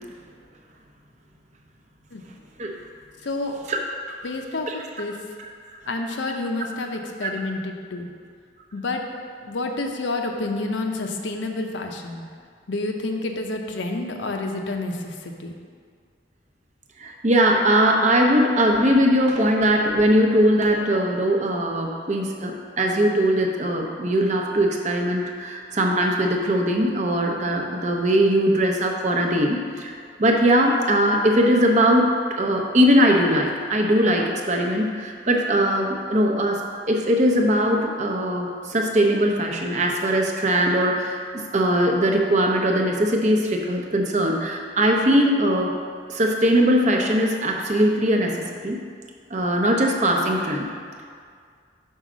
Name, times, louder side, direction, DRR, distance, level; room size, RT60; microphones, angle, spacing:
voice 1, 3.2-3.6 4.2-5.2 5.9-8.1 8.7-9.0 9.4-12.3 12.7-15.5, left 2 dB, 75° left, 3 dB, 0.7 m, -29 dB
voice 2, 17.0-29.9 30.2-36.6 36.9-45.8 46.1-48.8 49.3-50.7, equal, 40° right, 2 dB, 0.7 m, -20 dB
5.5 x 5.0 x 6.1 m, 2.1 s
head